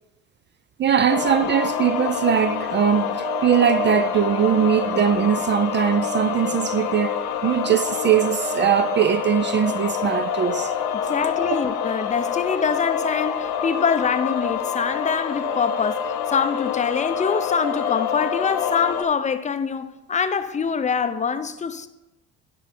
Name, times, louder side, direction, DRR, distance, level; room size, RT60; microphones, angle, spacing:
voice 1, 0.8-10.7, right 8 dB, 30° right, 0.4 m, -21 dB
sound 1, 1.1-19.0, left 7 dB, 75° left, 0.8 m, -26 dB
voice 2, 11.1-21.9, left 6 dB, 20° left, 0.6 m, -24 dB
10.5 x 4.9 x 4.3 m
supercardioid pair, 70°, 35 cm